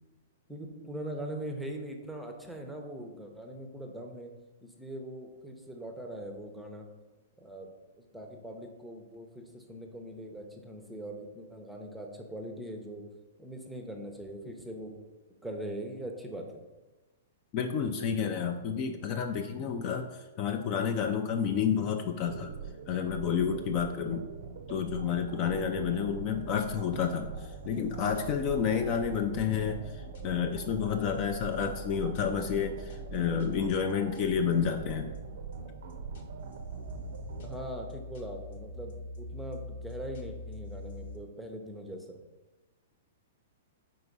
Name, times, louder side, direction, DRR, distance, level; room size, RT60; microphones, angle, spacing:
voice 1, 0.5-4.3 4.6-6.9 7.4-13.1 13.4-15.0 15.4-16.6 37.4-42.2, right 1 dB, ahead, 3 dB, 0.7 m, -41 dB
voice 2, 17.5-22.5 22.9-24.2 24.7-35.1, left 7 dB, 35° left, 5 dB, 0.4 m, -30 dB
sound 1, 22.2-37.6, right 5 dB, 70° right, 0.6 m, -43 dB
sound 2, 27.3-41.2, left 1 dB, 65° left, 0.9 m, -45 dB
4.7 x 4.0 x 5.3 m, 1.1 s
hypercardioid pair, 155°, 0 cm